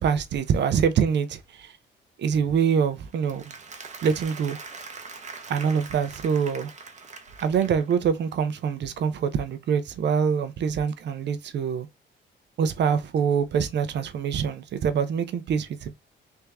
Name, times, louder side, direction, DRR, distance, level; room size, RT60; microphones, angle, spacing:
voice 1, 0.0-1.7 2.2-3.5 4.0-4.6 5.5-6.7 7.4-11.9 12.6-16.0, right 7 dB, 60° right, 0.7 m, -25 dB
Applause, 3.1-8.2, right 4 dB, 35° right, 0.9 m, -42 dB
3.5 x 2.8 x 3.3 m
cardioid pair, 90°, 20 cm